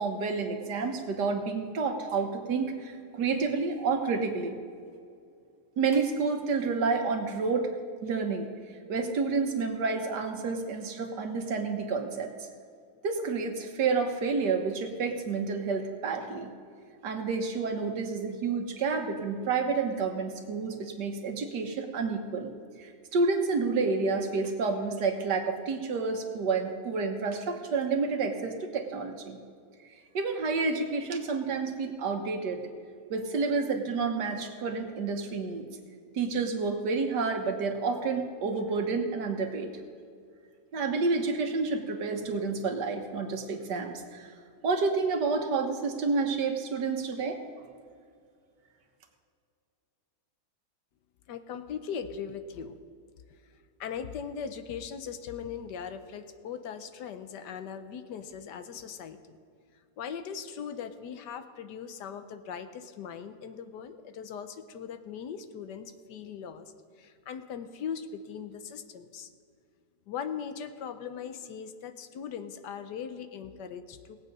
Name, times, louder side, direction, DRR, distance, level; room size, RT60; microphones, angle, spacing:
voice 1, 0.0-4.6 5.8-7.7 8.0-8.5 8.9-12.3 13.0-16.5 17.0-22.5 22.8-29.4 30.1-32.6 33.1-35.7 36.1-39.7 40.7-44.3 44.6-47.4, right 4 dB, 80° right, 4 dB, 1.8 m, -29 dB
voice 2, 51.3-52.8 53.8-59.4 60.0-66.7 67.0-69.3 70.1-74.2, left 7 dB, 85° left, 9 dB, 1.4 m, -39 dB
18.0 x 8.3 x 5.4 m, 2.3 s
omnidirectional pair, 1.8 m